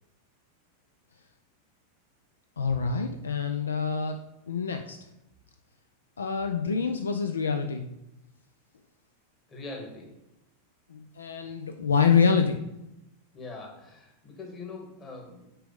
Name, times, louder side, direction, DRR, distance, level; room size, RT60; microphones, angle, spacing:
voice 1, 2.6-4.2 4.5-5.0 6.2-7.9 10.9-12.6, left 6 dB, 70° left, 7 dB, 0.4 m, -26 dB
voice 2, 9.5-10.2 13.3-15.6, left 3 dB, 25° left, 1 dB, 1.8 m, -42 dB
5.8 x 4.8 x 3.4 m, 0.88 s
figure-of-eight pair, 90°, 0 cm